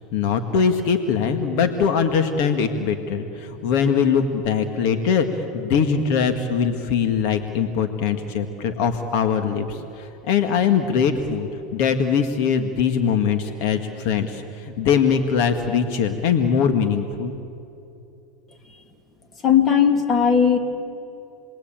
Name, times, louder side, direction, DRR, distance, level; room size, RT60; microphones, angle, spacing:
voice 1, 0.1-17.3, left 6 dB, 65° left, 7 dB, 1.9 m, -22 dB
voice 2, 19.4-20.6, left 7 dB, 30° left, 5 dB, 2.9 m, -17 dB
29.5 x 21.5 x 9.0 m, 2.8 s
supercardioid pair, 125°, 0 cm